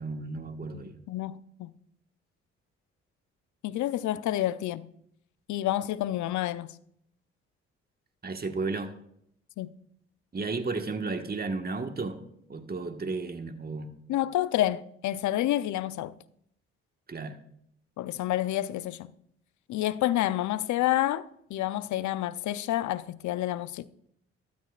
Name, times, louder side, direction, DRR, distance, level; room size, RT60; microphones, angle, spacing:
voice 1, 0.0-1.0 8.2-8.9 10.3-12.2 12.5-13.9 17.1-17.4, right 3 dB, 30° right, 1.6 m, -33 dB
voice 2, 1.1-1.7 3.6-4.9 5.5-6.7 9.6-9.7 14.1-16.1 18.0-19.1 19.7-23.9, left 14 dB, 65° left, 0.7 m, -29 dB
15.5 x 12.5 x 2.5 m
hypercardioid pair, 45°, 31 cm